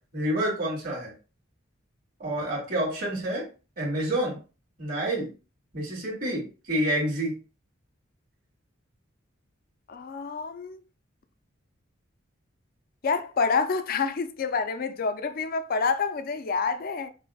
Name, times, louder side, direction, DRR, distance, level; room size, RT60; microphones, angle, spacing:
voice 1, 0.1-1.1 2.2-3.4 3.8-4.4 4.8-5.3 5.7-7.4, right 1 dB, 45° right, 2.1 m, -28 dB
voice 2, 9.9-10.8 13.0-17.1, left 4 dB, 45° left, 0.4 m, -28 dB
6.0 x 2.1 x 2.3 m
head